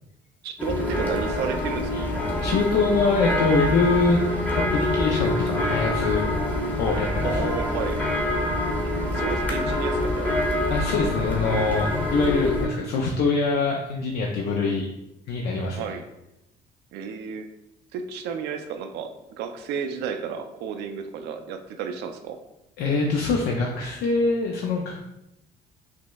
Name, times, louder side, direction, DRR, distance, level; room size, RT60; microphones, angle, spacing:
voice 1, 0.4-1.9 7.2-8.0 9.1-10.3 15.7-16.0 16.9-17.5 17.9-22.4, right 7 dB, 80° right, 7 dB, 0.4 m, -32 dB
sound 1, 0.6-12.7, left 1 dB, 10° left, 0.9 m, -26 dB
voice 2, 2.4-4.2 4.5-6.2 6.8-7.5 10.7-14.9 15.3-16.0 22.8-25.1, left 3 dB, 70° left, 0 dB, 0.5 m, -24 dB
6.0 x 2.0 x 2.2 m, 0.89 s
cardioid pair, 110°, 17 cm